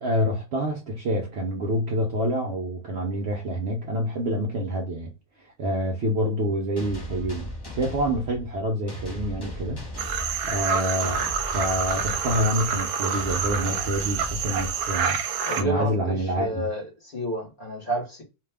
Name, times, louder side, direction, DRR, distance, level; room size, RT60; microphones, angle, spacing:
voice 1, 0.0-5.1 5.4-9.8 10.4-16.7, equal, 60° right, 0.7 m, -27 dB
sound 1, 6.8-15.2, left 1 dB, 25° left, 0.6 m, -37 dB
sound 2, 10.0-15.6, right 6 dB, 80° right, 1.1 m, -28 dB
voice 2, 15.4-18.2, right 1 dB, 40° left, 1.2 m, -30 dB
2.8 x 2.2 x 3.3 m
omnidirectional pair, 1.6 m